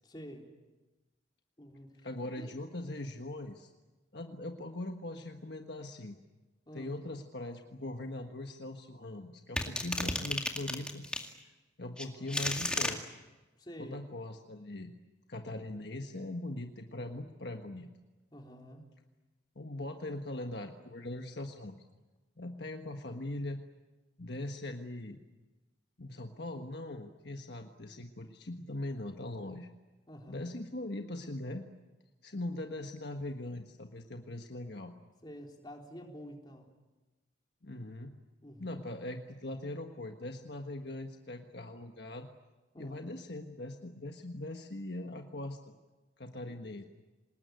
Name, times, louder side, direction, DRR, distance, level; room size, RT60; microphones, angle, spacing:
voice 1, 0.0-0.5 1.6-2.1 2.4-2.5 6.7-7.0 12.0-12.4 13.6-14.0 18.3-18.8 30.1-30.5 35.2-36.7 38.4-38.9 42.7-43.1 46.5-46.6, equal, 25° left, 1 dB, 3.8 m, -49 dB
voice 2, 2.0-3.7 4.1-6.2 6.7-11.0 11.8-13.0 13.8-14.9 15.3-17.9 19.5-21.8 22.4-23.6 24.2-25.2 26.0-29.7 30.3-31.7 32.2-34.9 37.6-38.2 38.6-42.3 42.8-45.6 46.2-46.8, left 1 dB, 60° left, 4 dB, 1.5 m, -41 dB
sound 1, 9.6-11.3 12.0-13.0, left 1 dB, 5° left, 2.2 m, -33 dB
27.5 x 19.5 x 9.4 m, 1.2 s
head